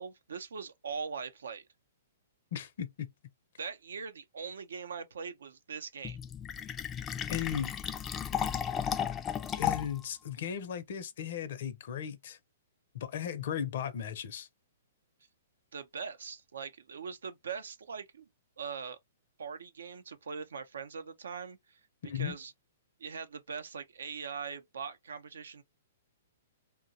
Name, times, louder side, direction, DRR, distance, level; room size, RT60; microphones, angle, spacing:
voice 1, 0.0-1.6 3.6-6.2 15.7-18.2 18.6-19.0 19.4-21.8 22.1-22.5 23.0-25.6, right 6 dB, 80° right, 0.5 m, -41 dB
voice 2, 2.5-3.1 7.3-7.7 9.6-12.4 12.9-14.5 22.0-22.4, left 9 dB, 60° left, 0.6 m, -36 dB
Fill (with liquid), 6.0-10.0, left 8 dB, 20° left, 0.3 m, -34 dB
2.8 x 2.1 x 2.6 m
hypercardioid pair, 130°, 0 cm